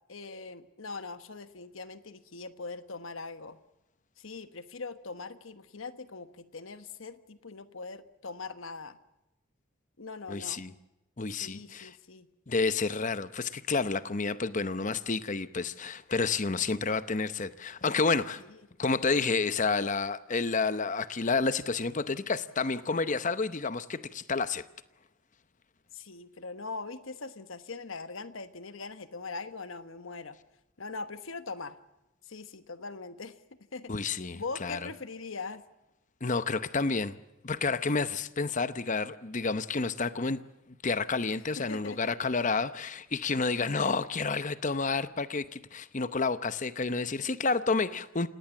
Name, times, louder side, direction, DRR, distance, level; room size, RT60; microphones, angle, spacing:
voice 1, 0.1-3.6 4.2-9.0 10.0-10.6 11.3-12.3 18.4-18.6 25.9-30.4 30.8-31.8 32.2-33.4 33.7-34.1 34.3-35.6 41.6-42.2, left 3 dB, 70° left, 1.2 m, -41 dB
voice 2, 10.3-10.7 11.2-11.9 12.5-18.4 18.8-24.6 33.9-34.8 36.2-37.2 37.4-40.4 40.8-48.3, left 4 dB, 35° left, 0.8 m, -30 dB
27.5 x 18.0 x 7.2 m
head